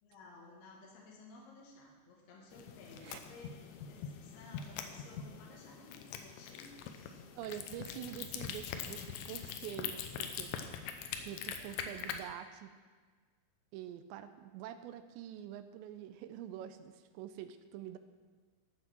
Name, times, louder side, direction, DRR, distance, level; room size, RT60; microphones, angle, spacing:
voice 1, 0.0-7.3, left 3 dB, 65° left, -2 dB, 3.7 m, -56 dB
sound 1, 2.5-12.2, left 8 dB, 80° left, 2.8 m, -43 dB
voice 2, 7.4-10.5 11.2-12.7 13.7-18.0, right 11 dB, 85° right, 10 dB, 2.7 m, -46 dB
14.5 x 6.3 x 6.1 m, 1.5 s
omnidirectional pair, 5.3 m